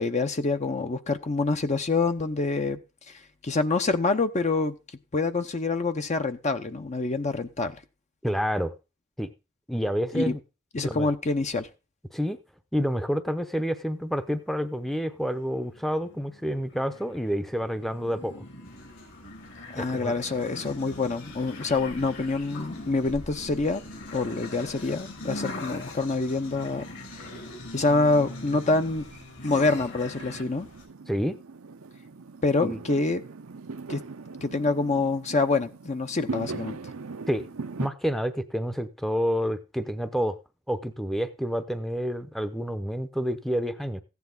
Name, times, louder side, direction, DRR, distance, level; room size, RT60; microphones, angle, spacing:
voice 1, 0.0-2.8 3.1-4.7 5.1-7.8 10.1-10.3 10.7-11.7 19.7-23.8 24.1-26.9 27.7-29.0 29.4-30.7 32.4-33.2 33.9-34.0 34.4-36.8, left 3 dB, 35° left, 8 dB, 0.8 m, -26 dB
voice 2, 8.2-8.7 9.2-9.3 9.7-10.4 10.8-11.1 12.1-12.4 12.7-18.5 19.8-20.1 31.1-31.4 32.6-32.8 37.3-37.5 37.8-40.4 40.7-44.0, equal, ahead, 10 dB, 0.8 m, -28 dB
sound 1, 14.8-30.4, left 1 dB, 55° left, 2.4 m, -42 dB
sound 2, 18.6-30.9, left 3 dB, 70° left, 5.4 m, -49 dB
Fireworks, 23.3-37.9, right 4 dB, 70° right, 0.7 m, -42 dB
15.0 x 9.5 x 3.9 m, 0.30 s
head